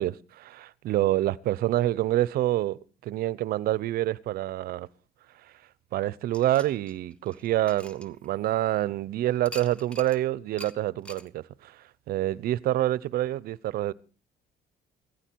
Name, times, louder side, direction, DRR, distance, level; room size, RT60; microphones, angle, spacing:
voice 1, 0.0-4.9 5.9-13.9, right 14 dB, 65° right, 0.7 m, -27 dB
sound 1, 6.3-8.7 9.4-10.2 10.6-10.7 11.0-11.3, equal, 5° left, 1.4 m, -45 dB
17.0 x 14.5 x 4.6 m
cardioid pair, 120°, 17 cm